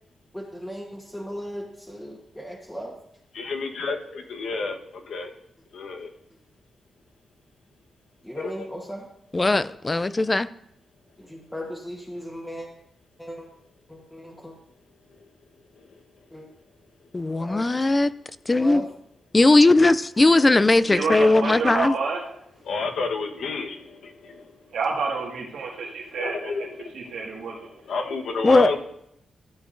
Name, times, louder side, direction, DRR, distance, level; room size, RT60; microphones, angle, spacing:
voice 1, 0.3-2.9 8.2-9.1 11.2-12.7 13.2-13.5 13.9-14.5 16.3-16.4 17.4-17.7 18.5-18.9 20.2-20.3, equal, 5° left, 1.3 m, -37 dB
voice 2, 3.3-4.8 5.1-5.3 5.7-6.1 8.4-8.5 22.6-24.5 26.2-27.4 27.9-28.8, left 4 dB, 80° left, 1.2 m, -30 dB
voice 3, 9.3-10.5 17.1-18.1 18.5-18.8 19.3-21.9 28.4-28.8, left 2 dB, 20° left, 0.4 m, -18 dB
voice 4, 20.8-22.4 24.7-26.7 26.9-27.7, right 4 dB, 75° right, 1.9 m, -29 dB
13.5 x 8.4 x 2.6 m
cardioid pair, 110°, 0 cm